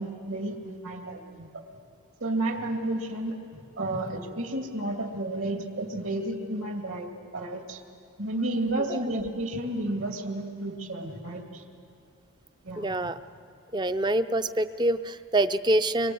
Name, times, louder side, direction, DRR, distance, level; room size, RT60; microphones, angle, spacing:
voice 1, 0.0-1.5 2.2-3.4 3.8-7.1 7.3-7.8 8.2-11.6 12.6-13.0, right 1 dB, 65° right, 3 dB, 2.5 m, -31 dB
voice 2, 12.8-13.2 13.7-16.1, right 1 dB, 20° right, 11 dB, 0.5 m, -26 dB
25.0 x 24.0 x 7.8 m, 2.6 s
head